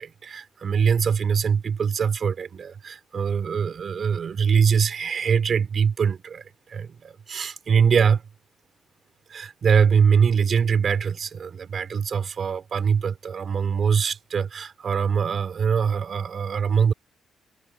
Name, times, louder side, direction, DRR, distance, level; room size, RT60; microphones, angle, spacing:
voice 1, 0.0-6.4 6.7-8.2 9.3-16.9, right 6 dB, 50° right, 4.3 m, -23 dB
cardioid pair, 90°, 0 cm